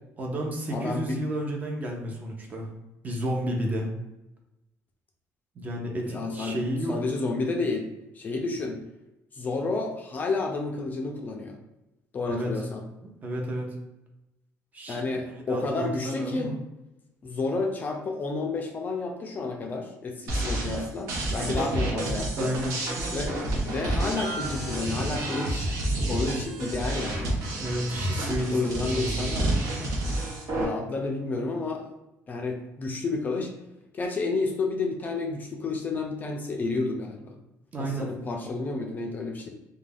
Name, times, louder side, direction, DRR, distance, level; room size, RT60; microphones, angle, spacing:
voice 1, 0.2-2.7 3.0-3.9 5.6-7.0 12.3-12.6 13.2-13.8 14.7-16.6 22.4-22.8 27.6-29.3 37.7-38.1, right 1 dB, 30° right, 1 dB, 0.5 m, -31 dB
voice 2, 0.7-1.2 6.0-6.6 6.9-7.8 8.2-8.8 9.3-11.6 12.1-12.8 14.9-16.6 17.2-22.5 23.1-25.7 26.0-27.3 28.3-29.5 30.5-31.9 32.3-33.5 33.9-37.4 37.8-39.5, left 3 dB, 30° left, 2 dB, 0.3 m, -30 dB
sound 1, 20.3-30.6, right 1 dB, 75° right, 0.7 m, -29 dB
2.4 x 2.2 x 3.3 m, 0.94 s
cardioid pair, 160°, 6 cm